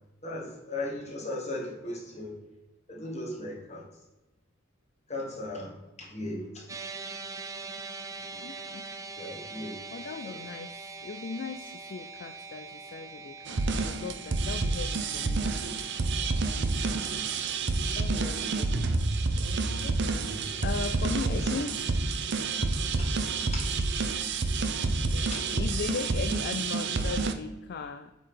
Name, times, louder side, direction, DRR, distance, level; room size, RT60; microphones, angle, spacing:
voice 1, 0.2-2.3 2.9-3.8 5.1-5.7 6.0-6.7 9.2-9.8 10.2-10.4 21.3-21.6 23.0-23.1 23.5-23.8 25.3-25.4, left 2 dB, 35° left, -3 dB, 2.1 m, -37 dB
sound 1, 6.7-19.1, right 4 dB, 15° right, 0.5 m, -44 dB
voice 2, 8.4-8.9 9.9-15.4 18.0-20.3 20.6-21.8 25.1-28.1, left 4 dB, 50° left, 8 dB, 0.4 m, -38 dB
sound 2, 13.5-27.3, right 3 dB, 60° right, 0.6 m, -29 dB
8.5 x 3.9 x 5.0 m, 1.0 s
head